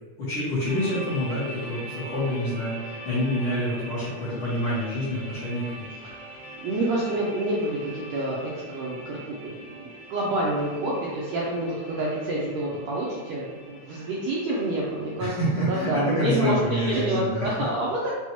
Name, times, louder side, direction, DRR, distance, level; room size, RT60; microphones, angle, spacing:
voice 1, 0.2-5.9 15.2-17.5, left 1 dB, 65° left, -11 dB, 1.4 m, -27 dB
sound 1, 0.7-15.2, equal, 40° left, 1.5 m, -42 dB
voice 2, 6.6-8.4 8.7-15.3 15.7-18.1, right 1 dB, 90° right, -5 dB, 1.5 m, -28 dB
5.6 x 2.3 x 2.9 m, 1.3 s
omnidirectional pair, 3.6 m